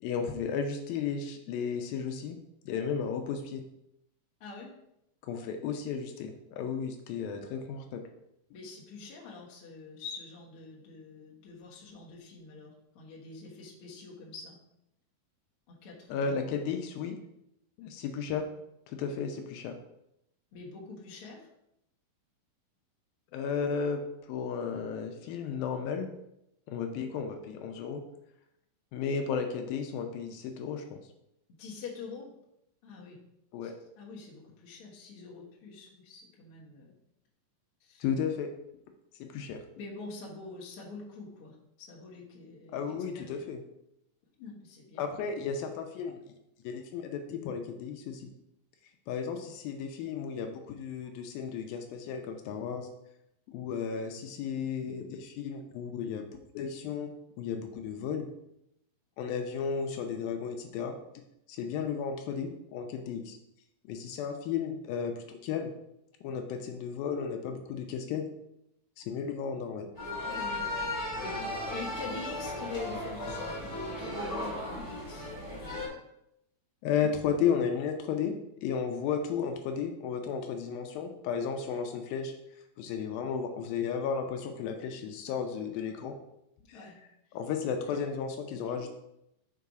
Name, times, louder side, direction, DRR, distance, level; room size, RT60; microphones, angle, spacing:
voice 1, 0.0-2.4 2.7-3.6 5.3-8.0 16.1-17.2 17.8-18.4 18.9-19.8 23.3-24.0 24.3-26.1 26.7-28.0 28.9-31.0 33.5-33.8 38.0-38.5 39.2-39.6 42.7-43.6 45.0-46.2 46.6-48.3 49.1-52.9 53.5-58.3 59.2-61.0 61.5-63.4 63.9-65.7 66.2-68.3 69.0-69.9 76.8-78.4 78.6-82.3 82.8-86.2 86.7-86.8 87.3-89.0, left 6 dB, 80° left, 5 dB, 2.4 m, -34 dB
voice 2, 4.4-4.7 8.5-14.6 15.7-16.4 20.5-21.5 31.6-32.3 32.8-33.2 33.6-36.9 37.8-38.0 39.8-43.4 44.4-45.1 70.3-71.2 71.7-75.3 77.0-77.1 86.7-87.0 88.7-88.8, left 4 dB, 60° left, -3 dB, 1.5 m, -45 dB
sound 1, 69.9-75.9, left 1 dB, 25° left, 2.1 m, -36 dB
5.4 x 4.6 x 4.8 m, 0.81 s
omnidirectional pair, 4.3 m